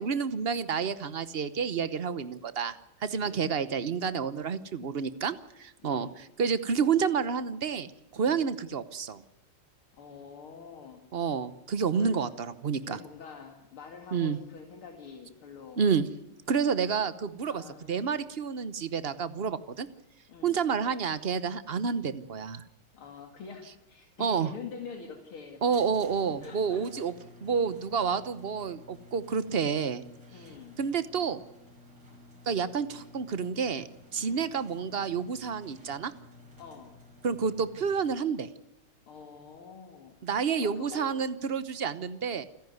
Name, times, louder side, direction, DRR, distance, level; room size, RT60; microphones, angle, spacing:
voice 1, 0.0-9.2 11.1-13.0 14.1-14.4 15.8-16.0 16.5-19.9 20.4-22.6 24.2-24.5 25.6-27.1 27.4-30.0 30.8-31.4 32.5-33.8 34.1-36.1 37.2-38.5 40.2-42.4, right 6 dB, 55° right, 14 dB, 0.6 m, -29 dB
voice 2, 3.2-3.5 5.8-6.1 8.2-8.5 10.0-11.0 11.9-12.3 12.8-15.8 17.5-18.1 20.3-20.6 22.9-25.6 26.4-27.0 30.3-30.8 34.2-34.5 36.6-36.9 39.1-40.2 40.6-41.1, left 5 dB, 75° left, 3 dB, 3.0 m, -45 dB
sound 1, 25.7-38.2, left 2 dB, 80° right, 6.3 m, -54 dB
29.0 x 10.5 x 9.5 m, 0.95 s
omnidirectional pair, 2.4 m